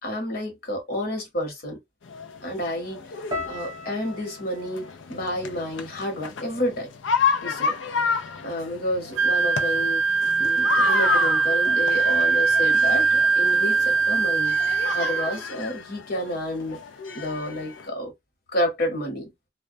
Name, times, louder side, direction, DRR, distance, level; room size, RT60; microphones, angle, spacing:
voice 1, 0.0-1.8 2.4-6.9 7.4-7.7 8.4-10.0 10.4-14.5 14.9-16.8 17.1-18.1 18.5-19.3, left 1 dB, 55° left, 1.0 m, -30 dB
sound 1, 2.1-17.9, left 5 dB, 85° left, 0.5 m, -31 dB
sound 2, 3.3-7.5 7.8-8.6 9.1-9.4, left 2 dB, 20° right, 0.5 m, -40 dB
Wind instrument woodwind instrument, 9.2-15.4, right 4 dB, 90° right, 0.3 m, -21 dB
2.2 x 2.2 x 2.5 m
head